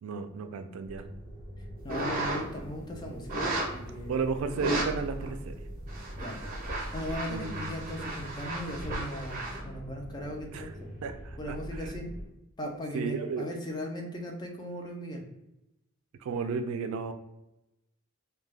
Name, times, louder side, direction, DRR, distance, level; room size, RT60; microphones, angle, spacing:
voice 1, 0.0-1.0 4.1-5.6 7.3-7.6 10.5-10.7 11.0-11.9 12.9-13.5 16.2-17.1, right 4 dB, 85° right, 8 dB, 0.3 m, -33 dB
sound 1, 0.8-12.3, equal, 45° left, 1.2 m, -43 dB
voice 2, 1.8-4.2 6.2-6.4 6.7-10.9 11.4-12.1 12.6-15.2, equal, 20° left, 2 dB, 0.4 m, -38 dB
sound 2, 1.9-2.6 3.3-3.8 4.5-4.9 5.2-5.3 5.8-9.6, right 2 dB, 40° right, 0.7 m, -34 dB
2.3 x 2.2 x 3.2 m, 0.91 s
head